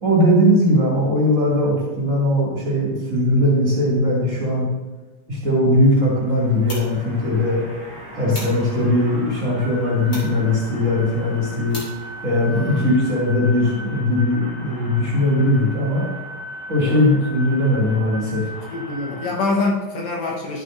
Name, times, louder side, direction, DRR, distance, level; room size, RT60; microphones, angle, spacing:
voice 1, 0.0-4.7 5.3-7.6 8.1-11.8 12.2-16.0 16.7-18.5, left 1 dB, 25° right, -6 dB, 2.5 m, -19 dB
sound 1, 5.8-19.5, equal, 10° left, 1.5 m, -37 dB
sound 2, 6.3-12.7, left 1 dB, 40° left, 3.4 m, -42 dB
voice 2, 12.5-12.9 16.8-17.1 18.7-20.6, left 3 dB, 70° left, -2 dB, 2.4 m, -25 dB
11.5 x 8.1 x 2.6 m, 1.2 s
omnidirectional pair, 3.3 m